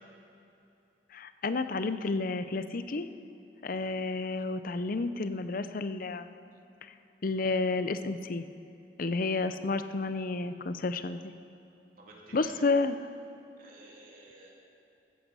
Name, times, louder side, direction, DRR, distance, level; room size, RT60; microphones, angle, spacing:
voice 1, 1.1-3.1 3.6-6.3 7.2-8.4 9.0-11.2 12.3-13.0, left 3 dB, 55° left, 11 dB, 0.6 m, -31 dB
voice 2, 12.0-12.7 13.6-14.5, right 2 dB, 55° right, -3 dB, 3.2 m, -52 dB
14.5 x 14.0 x 5.5 m, 2.8 s
head